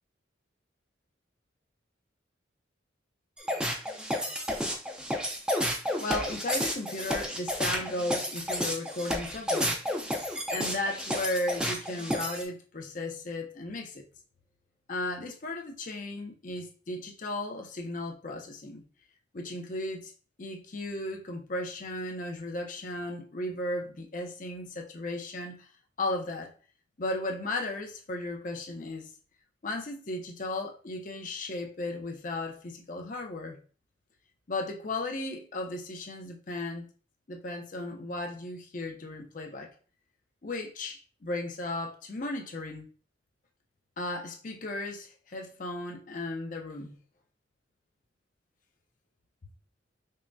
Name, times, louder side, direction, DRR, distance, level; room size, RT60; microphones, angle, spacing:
sound 1, 3.4-12.4, equal, 5° right, 0.4 m, -31 dB
voice 1, 6.0-9.8 10.5-14.0 14.9-18.8 19.3-20.1 20.4-25.7 26.0-26.5 27.0-29.1 29.6-33.6 34.5-36.9 37.3-39.7 40.4-42.9 44.0-47.0, left 2 dB, 40° left, 0.5 m, -35 dB
5.5 x 2.1 x 2.6 m
head